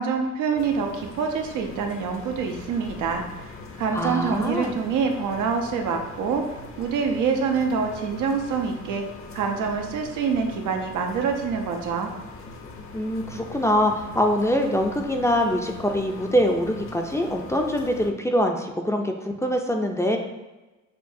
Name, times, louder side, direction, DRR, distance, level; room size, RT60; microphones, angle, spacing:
voice 1, 0.0-3.2 3.8-6.4 6.8-9.0 9.3-12.1, right 5 dB, 85° right, 3 dB, 0.7 m, -26 dB
sound 1, 0.6-18.1, left 3 dB, 45° left, 0.7 m, -41 dB
voice 2, 3.9-4.7 12.9-20.2, equal, 10° left, 3 dB, 0.4 m, -24 dB
6.6 x 2.3 x 2.7 m, 1.1 s
cardioid pair, 90°, 30 cm